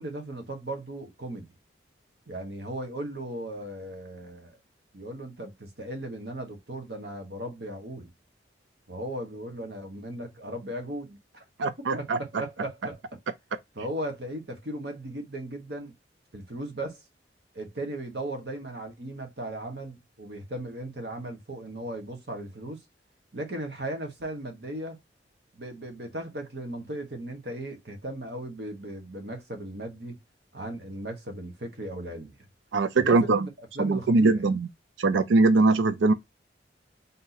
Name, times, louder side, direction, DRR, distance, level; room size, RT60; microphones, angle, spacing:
voice 1, 0.0-1.5 2.3-4.6 4.9-8.1 8.9-11.4 11.9-13.0 13.7-15.9 16.3-17.0 17.5-22.8 23.3-25.0 25.5-30.2 30.5-32.3 33.0-33.5 33.7-34.4, right 1 dB, 60° right, 1.2 m, -37 dB
voice 2, 11.6-12.2 32.7-33.5 33.8-34.7 35.0-36.1, right 3 dB, 85° right, 0.4 m, -21 dB
3.6 x 2.8 x 4.0 m
head